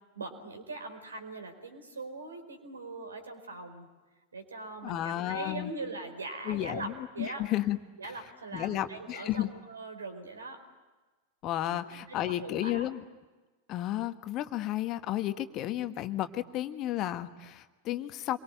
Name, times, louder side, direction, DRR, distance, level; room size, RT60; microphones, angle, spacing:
voice 1, 0.1-3.9 4.3-7.4 8.0-10.6 11.7-11.8 12.1-12.9, right 3 dB, 75° right, 6 dB, 4.6 m, -41 dB
voice 2, 4.8-5.7 6.4-7.8 8.5-9.5 11.4-13.0 13.7-18.4, left 13 dB, 35° left, 10 dB, 1.4 m, -32 dB
27.0 x 23.5 x 9.1 m, 1.2 s
figure-of-eight pair, 90°, 0 cm